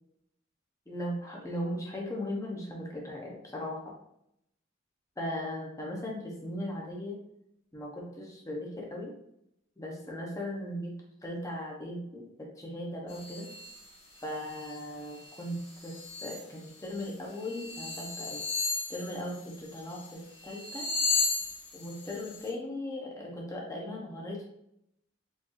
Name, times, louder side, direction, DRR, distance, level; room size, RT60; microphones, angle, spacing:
voice 1, 0.9-3.9 5.2-7.2 7.7-9.1 9.8-10.9 11.2-13.5 14.2-15.9 16.2-18.4 18.9-20.9 21.7-24.5, left 1 dB, 15° left, -2 dB, 0.7 m, -38 dB
sound 1, 13.1-13.8 14.2-14.8 15.2-16.4 16.9-17.1 17.4-20.1 20.4-22.5, left 3 dB, 70° left, 0.9 m, -34 dB
4.4 x 2.6 x 2.9 m, 0.77 s
head